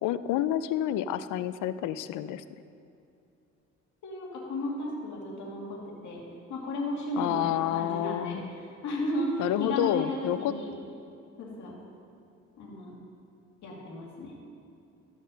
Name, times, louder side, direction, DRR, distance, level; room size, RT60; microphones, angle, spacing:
voice 1, 0.0-2.4 7.2-8.5 9.4-10.5, left 12 dB, 90° left, 14 dB, 0.5 m, -29 dB
voice 2, 4.0-6.2 6.5-8.4 8.8-10.7 11.4-11.8 12.6-13.0 13.6-14.3, left 1 dB, 70° left, -3 dB, 2.5 m, -34 dB
13.0 x 6.3 x 5.2 m, 2.6 s
cardioid pair, 90°, 30 cm